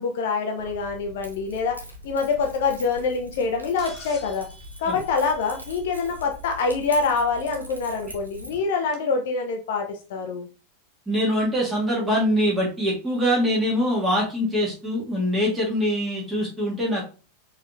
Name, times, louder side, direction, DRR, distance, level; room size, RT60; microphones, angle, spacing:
voice 1, 0.0-1.8 2.0-4.5 4.8-10.5, left 4 dB, 55° left, 3 dB, 0.6 m, -25 dB
Keys jangling, 0.6-8.6, equal, 80° right, 0.7 m, -42 dB
sound 1, 3.8-6.1 7.7-7.8 8.9-9.0, left 1 dB, 30° left, 1.3 m, -47 dB
voice 2, 11.1-17.0, equal, 10° right, -5 dB, 1.9 m, -23 dB
4.6 x 3.1 x 2.4 m, 0.35 s
figure-of-eight pair, 90°, 0 cm